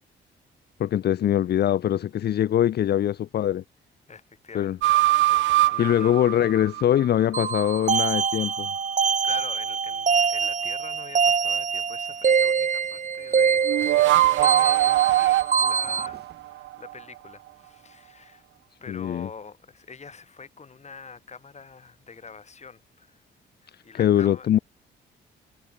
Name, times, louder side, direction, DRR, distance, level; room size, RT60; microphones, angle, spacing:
voice 1, 0.8-3.6 4.5-4.8 5.8-8.7 18.9-19.3 23.7-24.6, left 11 dB, 55° left, 0.6 m, -23 dB
voice 2, 4.1-4.9 5.2-5.4 5.7-6.2 9.2-18.5 18.8-23.2 23.8-24.5, left 5 dB, 35° left, 5.7 m, -44 dB
sound 1, 4.8-7.2 13.7-17.0, right 16 dB, 75° right, 0.5 m, -22 dB
sound 2, 7.3-16.1, right 6 dB, 40° right, 1.6 m, -24 dB
sound 3, 11.0-16.9, right 8 dB, 55° right, 7.7 m, -56 dB
cardioid pair, 90°, 20 cm